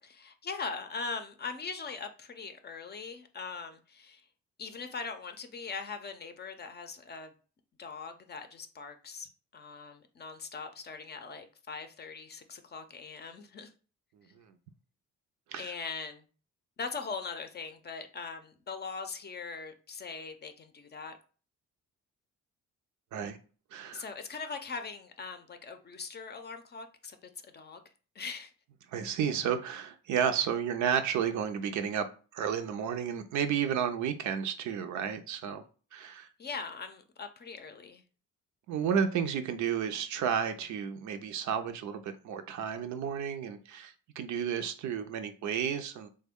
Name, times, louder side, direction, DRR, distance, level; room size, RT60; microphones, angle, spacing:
voice 1, 0.0-4.2 4.6-7.3 7.8-13.7 15.6-16.2 16.8-21.2 23.9-27.8 28.1-28.5 36.4-38.0, left 4 dB, 35° left, 0.5 m, -41 dB
voice 2, 23.7-24.0 28.9-32.1 32.3-35.6 35.9-36.3 38.7-46.1, right 8 dB, 70° right, 0.6 m, -32 dB
3.3 x 2.1 x 3.6 m
cardioid pair, 90°, 30 cm